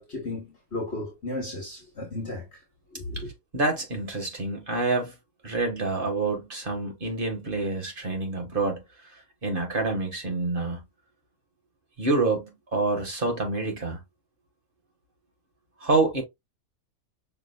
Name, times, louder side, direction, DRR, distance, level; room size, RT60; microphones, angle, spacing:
voice 1, 0.0-2.6 2.9-3.3, left 2 dB, 45° left, 1.6 m, -34 dB
voice 2, 3.5-5.1 5.4-8.8 9.4-10.8 12.0-14.0 15.8-16.2, right 3 dB, 35° right, 1.6 m, -27 dB
6.1 x 3.5 x 2.3 m
omnidirectional pair, 1.6 m